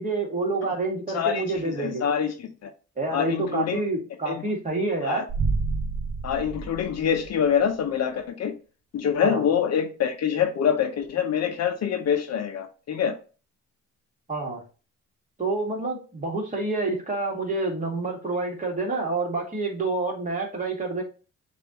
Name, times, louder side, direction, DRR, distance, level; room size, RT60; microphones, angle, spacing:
voice 1, 0.0-2.0 3.0-5.3 9.2-9.5 14.3-14.6 15.4-21.0, right 3 dB, 25° right, 1.8 m, -28 dB
voice 2, 1.1-2.7 3.1-3.8 4.3-4.4 5.0-5.2 6.2-8.5 8.9-13.2, left 8 dB, 60° left, 0.7 m, -25 dB
sound 1, 5.3-7.6, right 4 dB, 55° right, 0.8 m, -29 dB
6.8 x 2.6 x 2.9 m
cardioid pair, 90°, 30 cm